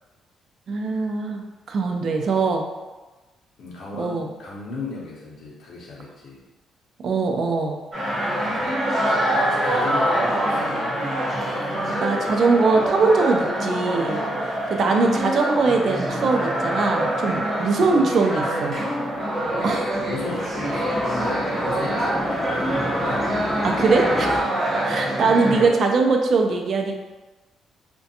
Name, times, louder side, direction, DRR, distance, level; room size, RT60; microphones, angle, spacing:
voice 1, 0.7-2.6 4.0-4.3 7.0-7.8 12.0-14.2 14.7-18.7 19.6-19.9 23.6-24.5 24.8-27.0, right 4 dB, 55° right, 3 dB, 0.4 m, -21 dB
voice 2, 3.6-6.4 8.4-8.7 9.0-10.7 14.5-14.7 17.3-17.4 19.9-23.3, left 3 dB, 65° left, -4 dB, 0.7 m, -36 dB
sound 1, 7.9-25.7, right 1 dB, 40° right, 1.0 m, -25 dB
sound 2, 18.7-24.4, left 1 dB, 10° left, 0.5 m, -33 dB
2.5 x 2.2 x 2.7 m, 1.1 s
cardioid pair, 90°, 0 cm